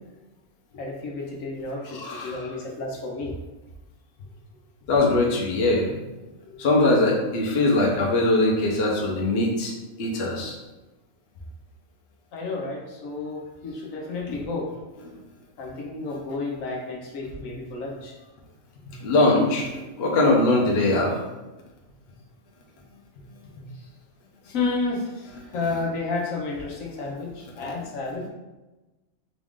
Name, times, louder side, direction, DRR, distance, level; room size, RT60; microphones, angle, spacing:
voice 1, 0.7-3.3 6.4-6.6 8.7-8.8 12.3-14.7 15.6-18.1 18.9-19.0 23.6-23.9 24.4-28.3, left 3 dB, 80° left, -2 dB, 1.1 m, -31 dB
voice 2, 1.9-2.4 4.9-5.9 6.6-9.7 10.0-10.5 19.0-19.7 20.0-21.2, left 2 dB, 55° left, -2 dB, 0.9 m, -21 dB
4.0 x 2.5 x 3.5 m, 1.1 s
omnidirectional pair, 1.4 m